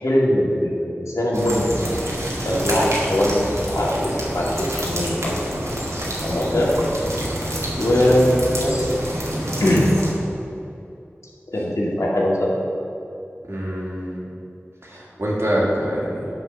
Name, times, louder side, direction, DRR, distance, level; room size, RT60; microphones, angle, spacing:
voice 1, 0.0-1.9 2.4-5.3 6.2-6.7 7.8-9.0 9.6-9.9 11.5-12.5, left 1 dB, 90° left, -4 dB, 1.8 m, -21 dB
sound 1, 1.3-10.1, equal, 80° right, 1.9 m, -27 dB
voice 2, 13.5-14.3 14.8-16.3, equal, 60° right, -5 dB, 2.3 m, -25 dB
9.5 x 4.8 x 6.5 m, 2.7 s
wide cardioid pair, 40°, 5 cm